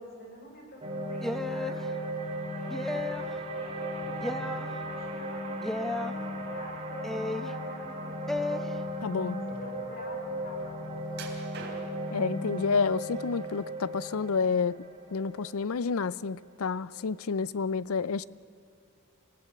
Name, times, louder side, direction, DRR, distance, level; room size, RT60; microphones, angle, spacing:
voice 1, 0.0-2.0 2.5-3.2 3.5-6.2 6.5-8.6 9.5-11.1, left 1 dB, 45° left, 5.3 m, -47 dB
sound 1, 0.8-17.1, equal, 30° right, 3.4 m, -36 dB
sound 2, 1.2-1.8 2.7-3.3 4.2-4.7 5.6-6.1 7.0-7.5 8.3-8.6, left 2 dB, ahead, 0.8 m, -33 dB
voice 2, 9.0-9.5 12.1-18.2, left 5 dB, 85° left, 0.5 m, -30 dB
sound 3, 11.1-12.2 12.8-13.5 13.9-14.8 15.2-15.4 15.9-16.0, right 4 dB, 50° right, 3.7 m, -45 dB
25.5 x 16.5 x 8.6 m
head